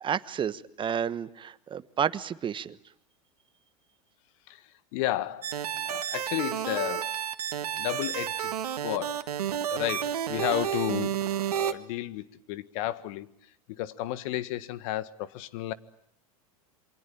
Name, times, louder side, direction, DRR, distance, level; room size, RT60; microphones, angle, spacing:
voice 1, 0.0-2.8, right 8 dB, 25° right, 1.2 m, -31 dB
voice 2, 4.5-7.2 7.8-9.3 9.7-13.3 13.7-15.7, left 14 dB, 60° left, 1.6 m, -33 dB
sound 1, 5.4-11.7, right 10 dB, 85° right, 1.7 m, -31 dB
28.0 x 24.0 x 8.8 m
hypercardioid pair, 105°, 19 cm